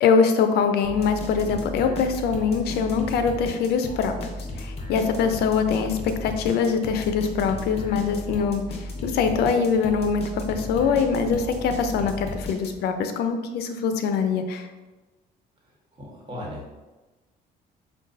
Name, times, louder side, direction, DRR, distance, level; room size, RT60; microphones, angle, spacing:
voice 1, 0.0-4.3 4.6-8.6 9.0-14.7, left 6 dB, 75° left, 7 dB, 0.4 m, -23 dB
sound 1, 0.8-13.0, left 1 dB, 35° left, 0.8 m, -35 dB
voice 2, 15.9-16.7, left 1 dB, 30° right, -4 dB, 1.3 m, -37 dB
5.1 x 2.2 x 2.5 m, 1.2 s
cardioid pair, 110°, 17 cm